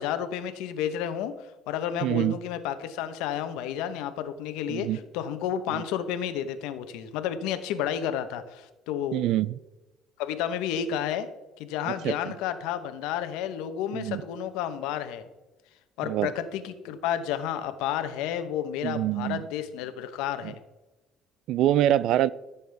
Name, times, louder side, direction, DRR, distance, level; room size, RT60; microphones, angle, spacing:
voice 1, 0.0-9.2 10.2-11.3 11.6-15.3 16.0-20.6, left 9 dB, 85° left, 9 dB, 1.0 m, -31 dB
voice 2, 2.0-2.4 4.7-5.0 5.7-5.8 9.1-9.6 11.9-12.1 13.9-14.2 16.0-16.3 18.8-19.4 21.5-22.3, right 13 dB, 65° right, 20 dB, 0.4 m, -25 dB
14.5 x 7.1 x 3.5 m, 1.1 s
cardioid pair, 125°, 0 cm